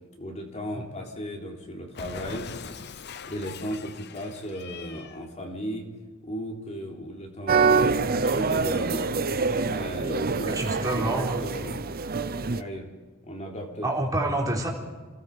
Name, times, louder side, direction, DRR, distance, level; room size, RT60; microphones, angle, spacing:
voice 1, 0.2-2.5 3.3-5.9 6.2-9.1 9.7-10.6 10.8-11.7 12.4-12.9 13.2-13.9, equal, 30° left, 1 dB, 3.6 m, -35 dB
Cat, 1.9-5.2, left 5 dB, 50° left, 0.8 m, -41 dB
sound 1, 7.5-12.6, right 4 dB, 45° right, 0.7 m, -25 dB
voice 2, 10.5-11.5 13.8-14.7, right 1 dB, 15° right, -1 dB, 3.7 m, -28 dB
28.5 x 18.5 x 5.0 m, 1.4 s
head